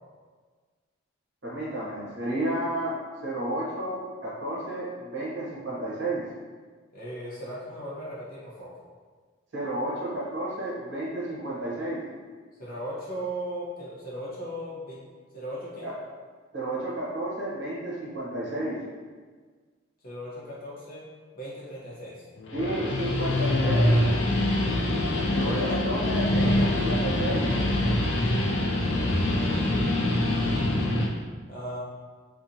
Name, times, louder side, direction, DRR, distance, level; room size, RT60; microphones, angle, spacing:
voice 1, 1.4-3.0 3.2-6.2 9.5-12.0 15.8-15.9 16.5-18.8 22.5-24.0 25.3-27.5, right 1 dB, 60° right, -7 dB, 0.8 m, -31 dB
voice 2, 6.9-8.7 12.6-15.0 15.3-15.9 20.0-21.0 21.3-22.3 25.4-25.7 28.9-29.6 31.5-31.8, right 1 dB, 45° left, -8 dB, 0.9 m, -37 dB
Guitar, 22.4-31.1, left 1 dB, 65° left, 0.4 m, -24 dB
2.7 x 2.5 x 2.6 m, 1.5 s
head